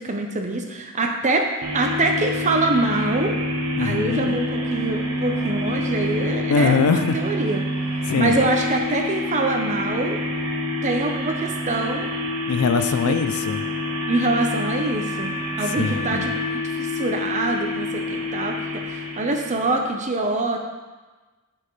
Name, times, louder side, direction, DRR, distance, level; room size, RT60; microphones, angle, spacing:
voice 1, 0.0-1.5 1.7-3.3 3.8-7.7 8.2-10.2 10.8-12.1 13.1-13.2 14.1-20.6, right 2 dB, 35° right, 3 dB, 0.8 m, -24 dB
sound 1, 1.6-19.9, left 1 dB, 85° right, 1.0 m, -27 dB
voice 2, 3.8-4.4 6.5-7.2 8.0-8.4 12.5-13.7 15.6-16.3, left 5 dB, 80° left, 10 dB, 0.4 m, -22 dB
7.4 x 6.6 x 3.2 m, 1.3 s
head